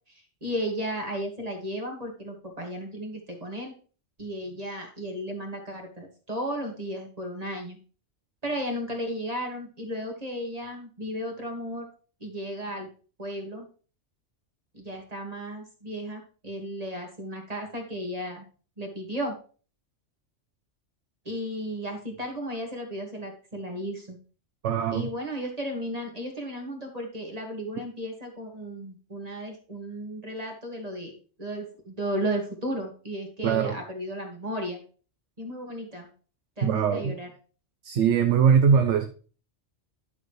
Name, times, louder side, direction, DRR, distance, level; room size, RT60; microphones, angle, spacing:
voice 1, 0.1-3.7 4.2-7.8 8.4-11.9 12.2-12.9 13.2-13.7 14.7-18.4 18.8-19.4 21.3-24.2 24.9-31.1 31.4-34.8 35.4-36.1 36.6-37.3, equal, 30° right, 2 dB, 2.1 m, -34 dB
voice 2, 24.6-25.1 33.4-33.8 36.6-37.2 37.8-39.1, right 7 dB, 75° right, 6 dB, 1.1 m, -21 dB
11.5 x 6.7 x 3.3 m, 0.39 s
omnidirectional pair, 1.2 m